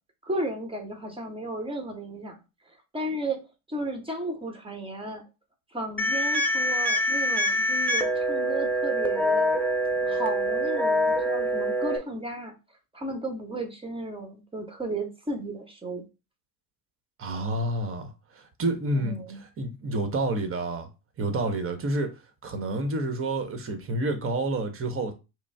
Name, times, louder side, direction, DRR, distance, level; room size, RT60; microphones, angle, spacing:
voice 1, 0.2-2.4 2.9-5.2 5.7-9.5 10.0-12.5 12.9-16.0 18.9-19.4, right 1 dB, 10° right, 1.2 m, -34 dB
sound 1, 6.0-12.0, equal, 5° left, 0.6 m, -25 dB
voice 2, 17.2-20.9 21.2-22.1 22.4-25.1, right 2 dB, 30° right, 1.0 m, -29 dB
5.0 x 2.0 x 3.4 m
hypercardioid pair, 85°, 44 cm